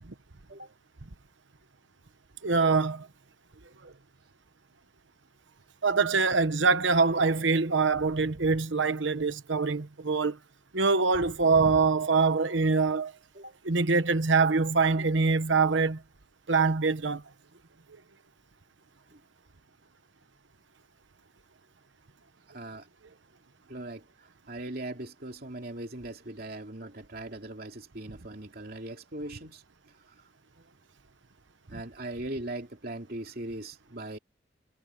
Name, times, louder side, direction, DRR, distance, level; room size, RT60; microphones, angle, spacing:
voice 1, 2.4-3.1 3.8-3.9 5.8-10.4 10.7-13.1 13.6-16.0 16.5-17.2, right 4 dB, 80° right, 1.1 m, -24 dB
voice 2, 22.5-22.9 23.7-29.6 30.1-30.2 31.7-34.2, right 1 dB, 50° right, 3.0 m, -40 dB
head